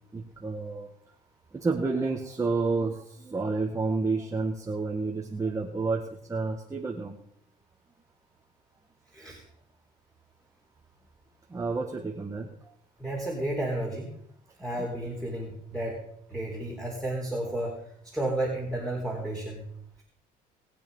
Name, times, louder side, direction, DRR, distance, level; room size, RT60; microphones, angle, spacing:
voice 1, 0.1-0.9 1.5-7.2 11.5-12.5 14.8-14.9, right 3 dB, 20° right, 1 dB, 1.7 m, -30 dB
voice 2, 13.0-14.1 14.6-16.0 16.3-17.8 18.1-19.7, right 1 dB, 5° left, -2 dB, 3.8 m, -32 dB
21.0 x 8.5 x 5.5 m, 0.69 s
cardioid pair, 110°, 17 cm